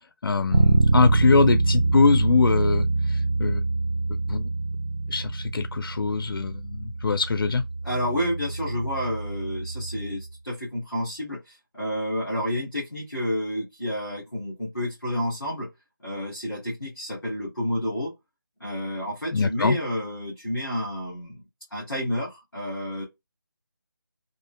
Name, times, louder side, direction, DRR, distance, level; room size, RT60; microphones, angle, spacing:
voice 1, 0.2-3.6 4.3-4.5 5.1-7.7 19.3-19.8, left 4 dB, 85° left, 0.4 m, -23 dB
Bass guitar, 0.5-10.3, right 3 dB, 60° right, 0.3 m, -25 dB
voice 2, 7.8-15.7 16.0-18.1 18.6-21.4 21.7-23.0, equal, ahead, 0.5 m, -30 dB
2.6 x 2.2 x 3.6 m
figure-of-eight pair, 180°, 12 cm